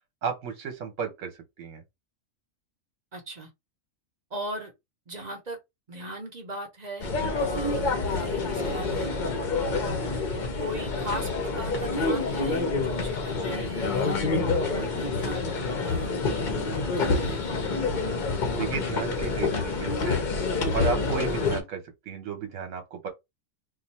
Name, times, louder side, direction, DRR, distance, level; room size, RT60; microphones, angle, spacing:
voice 1, 0.2-1.8 18.5-20.2 20.7-23.1, right 6 dB, 70° right, 1.1 m, -33 dB
voice 2, 3.1-3.5 4.3-4.7 5.1-5.6 5.9-7.1 7.4-9.1 10.6-14.3 14.7-16.3 17.0-17.5, right 1 dB, 40° right, 0.7 m, -38 dB
sound 1, 7.0-21.6, left 3 dB, 45° left, 0.7 m, -27 dB
2.6 x 2.4 x 4.1 m
omnidirectional pair, 1.4 m